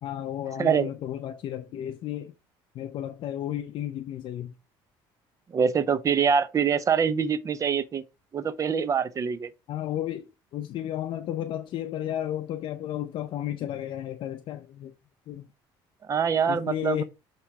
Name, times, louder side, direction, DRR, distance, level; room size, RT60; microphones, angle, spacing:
voice 1, 0.0-2.3 2.7-4.5 9.7-14.9 15.3-15.5 16.5-17.0, left 11 dB, 60° left, 0.6 m, -33 dB
voice 2, 0.6-0.9 5.5-8.0 8.3-9.5 16.1-17.0, right 7 dB, 35° right, 0.7 m, -24 dB
8.6 x 3.0 x 4.7 m
cardioid pair, 110°, 10 cm